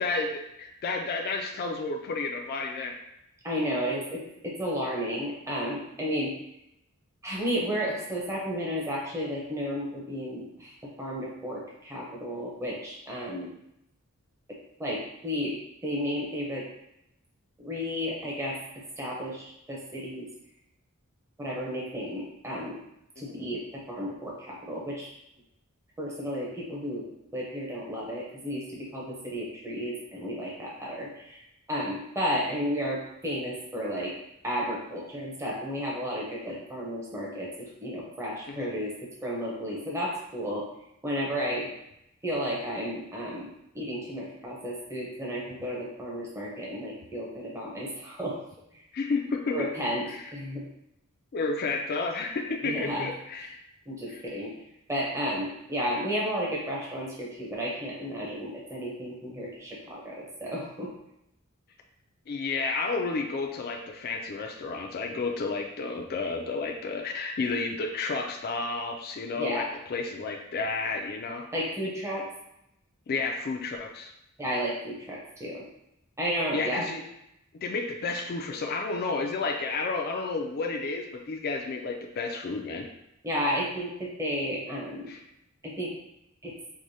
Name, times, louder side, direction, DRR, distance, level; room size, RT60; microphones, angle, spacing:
voice 1, 0.0-3.0 23.2-23.4 38.5-38.7 48.9-49.7 50.1-50.3 51.3-53.6 54.1-54.2 62.3-71.5 73.1-74.1 76.5-77.0 77.6-82.9 85.1-85.2, left 4 dB, 45° left, 2 dB, 0.4 m, -31 dB
voice 2, 3.4-6.4 7.2-10.7 11.0-13.5 14.8-15.6 15.8-16.6 17.6-18.6 19.0-20.3 21.4-22.8 23.2-25.1 26.0-27.0 27.3-31.4 31.7-34.1 34.4-37.5 37.8-38.9 39.2-40.6 41.0-41.7 42.2-43.5 43.7-48.4 48.7-48.8 49.5-50.1 50.3-50.6 52.6-53.1 53.9-54.5 54.9-60.9 69.3-69.7 71.5-72.3 74.4-75.6 76.2-76.8 83.2-85.1 85.6-85.9 86.4-86.6, equal, 15° right, -5 dB, 0.7 m, -32 dB
4.7 x 2.1 x 2.6 m, 0.82 s
head